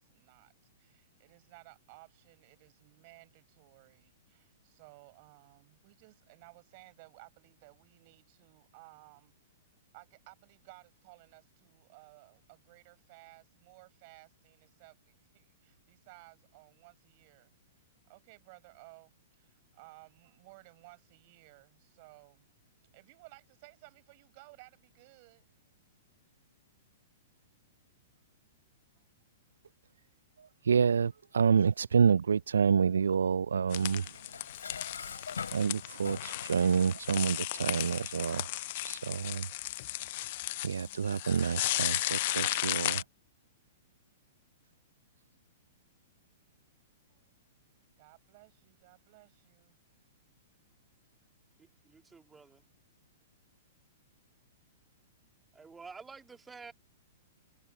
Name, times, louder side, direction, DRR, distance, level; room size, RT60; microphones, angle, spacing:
voice 1, 0.0-9.3 9.9-22.5 22.9-25.7 29.0-29.1 47.1-47.3 48.0-49.8, right 26 dB, 45° right, 5.8 m, -58 dB
voice 2, 30.4-34.2 35.0-35.2 35.5-38.5 38.8-39.5 40.6-43.0, right 6 dB, 70° right, 0.4 m, -28 dB
sound 1, 33.7-43.0, left 18 dB, 50° left, 0.4 m, -35 dB
Dishes pots and pans, 34.2-36.6, left 6 dB, 70° left, 3.2 m, -42 dB
voice 3, 51.8-52.6 55.5-56.7, right 4 dB, 10° right, 2.3 m, -49 dB
figure-of-eight pair, 105°, 0 cm